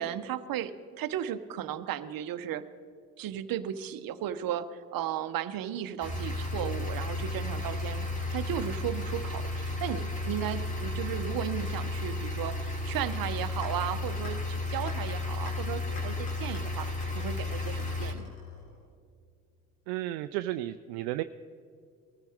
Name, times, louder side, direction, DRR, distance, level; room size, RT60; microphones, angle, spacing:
voice 1, 0.0-2.7 3.2-8.1 8.3-16.9 17.1-18.3, right 11 dB, 50° right, 11 dB, 0.9 m, -35 dB
sound 1, 6.0-18.1, left 2 dB, 15° left, 2.8 m, -33 dB
sound 2, 13.6-13.7 14.2-14.3 14.9-15.0 15.5-15.6 16.0-18.9, left 3 dB, 80° left, 4.0 m, -47 dB
voice 2, 19.9-21.2, right 15 dB, 65° right, 11 dB, 0.5 m, -33 dB
20.5 x 14.5 x 3.6 m, 2.3 s
hypercardioid pair, 60°, 46 cm